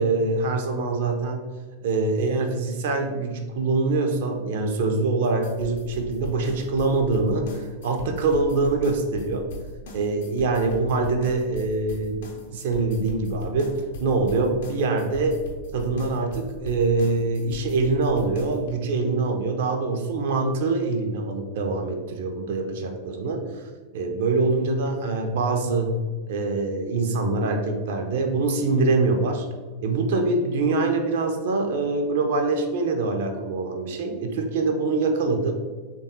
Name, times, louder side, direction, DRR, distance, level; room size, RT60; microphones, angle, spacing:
voice 1, 0.0-1.4 1.8-9.5 9.9-15.4 15.7-23.6 23.9-26.0 26.3-29.5 29.8-35.6, right 3 dB, 55° right, 4 dB, 0.4 m, -24 dB
sound 1, 5.2-18.7, equal, 60° left, 0.5 m, -39 dB
3.3 x 2.2 x 2.7 m, 1.4 s
figure-of-eight pair, 90°, 0 cm